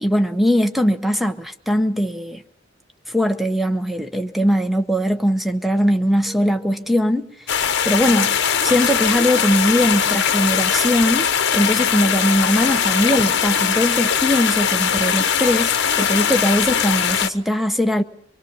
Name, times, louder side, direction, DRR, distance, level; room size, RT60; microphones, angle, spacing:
voice 1, 0.0-2.4 3.1-7.3 7.8-8.4 8.6-18.0, equal, ahead, 0.8 m, -20 dB
sound 1, 6.2-7.0 7.3-7.6 8.3-13.7, left 1 dB, 65° right, 4.0 m, -45 dB
sound 2, 7.5-17.3, left 8 dB, 55° left, 1.0 m, -20 dB
25.0 x 22.0 x 5.5 m
head